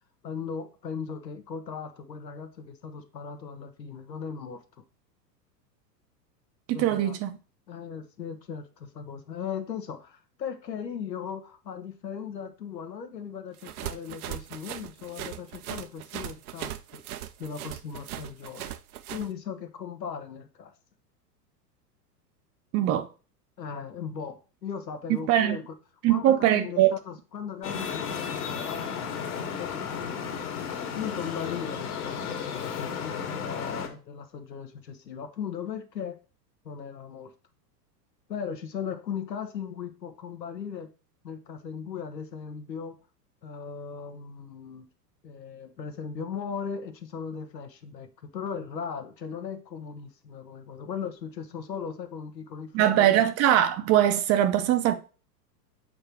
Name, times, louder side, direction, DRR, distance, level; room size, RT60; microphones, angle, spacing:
voice 1, 0.2-4.6 6.7-7.2 7.7-17.0 17.4-18.7 19.1-20.7 23.6-25.7 26.1-30.4 30.9-36.2 36.6-37.3 38.3-40.9 41.2-42.9 43.4-44.9 45.2-53.2, left 7 dB, 80° left, 1.4 m, -38 dB
voice 2, 6.7-7.4 22.7-23.1 25.3-25.6 26.0-26.9 52.7-55.0, right 12 dB, 30° right, 0.7 m, -22 dB
sound 1, 13.6-19.3, right 12 dB, 60° right, 0.8 m, -39 dB
Traffic noise roadway noise, 27.6-33.9, left 7 dB, 55° left, 2.0 m, -34 dB
7.8 x 3.9 x 4.5 m
figure-of-eight pair, 100°, 50 cm